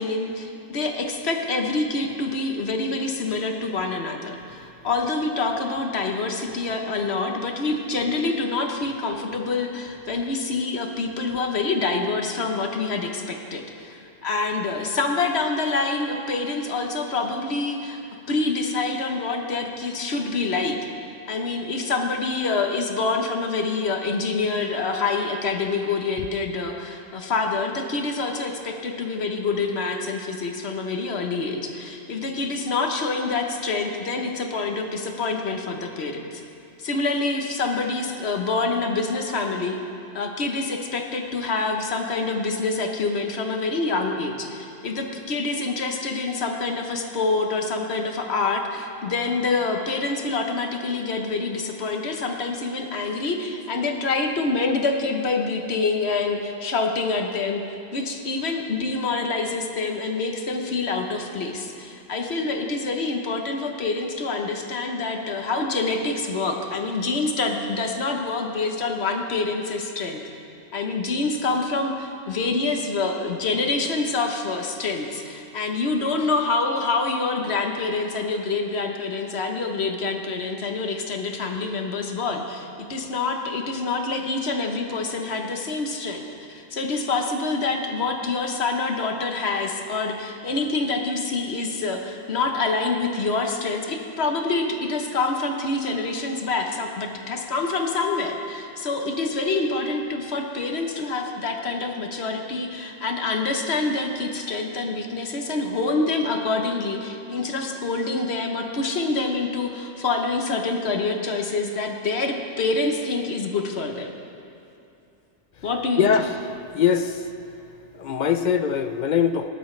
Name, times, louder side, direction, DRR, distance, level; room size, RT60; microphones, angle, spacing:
voice 1, 0.0-18.0 18.3-20.8 21.3-36.4 36.8-39.8 40.1-57.6 57.9-70.2 70.7-86.2 86.5-114.1 115.6-116.1, left 3 dB, 70° left, 3 dB, 1.3 m, -26 dB
voice 2, 116.0-116.3 116.7-117.1 118.0-119.5, left 7 dB, 55° left, 9 dB, 0.6 m, -21 dB
18.5 x 11.5 x 3.2 m, 2.7 s
omnidirectional pair, 1.1 m